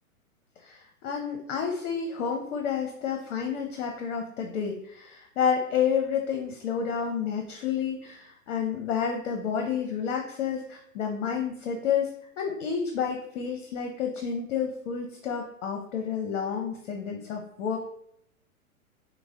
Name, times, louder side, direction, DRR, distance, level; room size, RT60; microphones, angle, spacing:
voice 1, 0.6-12.1 12.4-17.8, left 7 dB, 60° left, 3 dB, 0.8 m, -30 dB
6.0 x 2.1 x 3.7 m, 0.71 s
hypercardioid pair, 110°, 43 cm